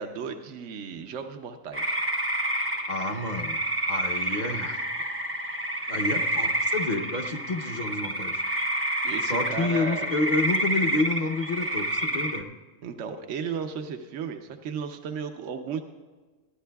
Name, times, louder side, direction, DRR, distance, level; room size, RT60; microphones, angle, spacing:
voice 1, 0.0-2.0 9.0-10.1 12.8-15.8, right 6 dB, 70° right, 5 dB, 1.0 m, -35 dB
sound 1, 1.7-12.4, right 1 dB, 15° right, 0.5 m, -29 dB
voice 2, 2.9-3.6 3.9-4.8 5.9-8.3 9.3-12.5, left 2 dB, 40° left, 4 dB, 0.9 m, -29 dB
26.0 x 11.5 x 2.3 m, 1.4 s
omnidirectional pair, 1.3 m